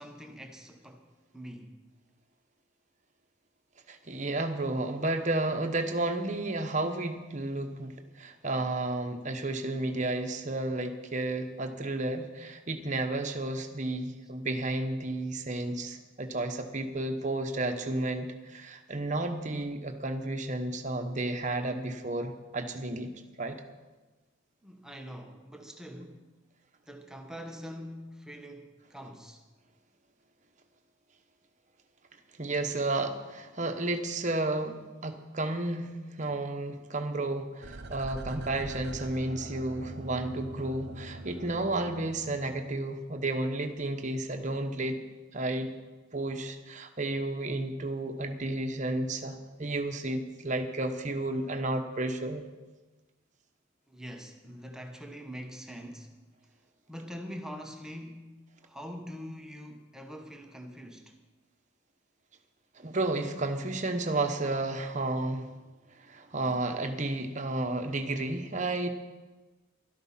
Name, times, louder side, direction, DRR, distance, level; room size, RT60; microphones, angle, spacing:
voice 1, 0.0-1.8 24.6-26.3 26.8-29.5 53.9-56.2 56.9-61.2, equal, 5° right, 1.1 m, -44 dB
voice 2, 3.9-23.1 23.4-23.6 32.4-45.0 45.3-45.7 46.1-52.4 62.8-65.4 66.0-68.9, right 2 dB, 40° right, 1.1 m, -32 dB
sound 1, 37.6-42.8 43.1-43.2, right 2 dB, 55° right, 0.8 m, -43 dB
13.0 x 12.0 x 5.7 m
head